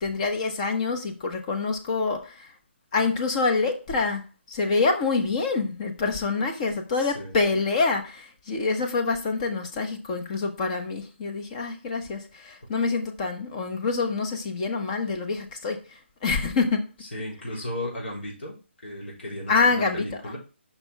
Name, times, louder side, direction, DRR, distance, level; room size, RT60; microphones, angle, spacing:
voice 1, 0.0-2.5 2.9-16.8 19.5-20.1, left 4 dB, 35° left, 5 dB, 1.3 m, -26 dB
voice 2, 6.9-7.4 17.0-20.4, left 1 dB, 65° left, -4 dB, 4.1 m, -35 dB
6.8 x 5.8 x 3.5 m, 0.32 s
hypercardioid pair, 155°, 7 cm